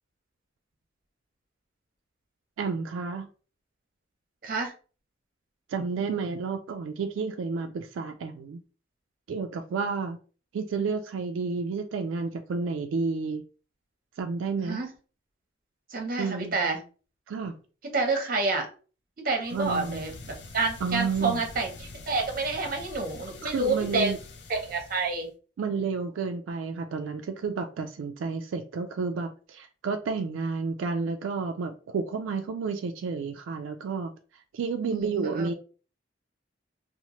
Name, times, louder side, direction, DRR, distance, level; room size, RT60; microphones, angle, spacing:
voice 1, 2.6-3.3 5.7-8.6 9.3-10.2 10.5-13.4 14.2-14.8 16.2-16.5 17.3-17.6 19.5-20.0 20.8-21.4 23.4-24.2 25.6-34.1 34.5-35.5, right 4 dB, 85° right, 0.3 m, -31 dB
voice 2, 4.4-4.7 14.6-14.9 15.9-16.8 17.9-18.7 19.2-24.1 24.5-25.3 34.8-35.5, right 3 dB, 50° right, 0.7 m, -29 dB
sound 1, 19.4-25.3, left 3 dB, 60° left, 0.4 m, -45 dB
2.7 x 2.1 x 2.9 m
head